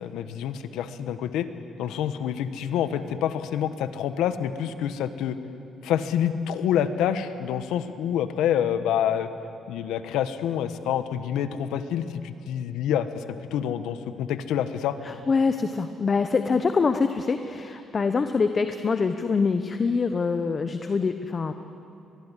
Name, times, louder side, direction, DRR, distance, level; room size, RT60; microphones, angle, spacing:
voice 1, 0.0-1.5 1.8-5.4 5.8-9.3 9.7-14.9, left 9 dB, 90° left, 10 dB, 1.2 m, -27 dB
voice 2, 15.0-21.5, left 4 dB, 40° left, 8 dB, 1.1 m, -24 dB
23.5 x 19.5 x 10.0 m, 2.6 s
cardioid pair, 90°, 0 cm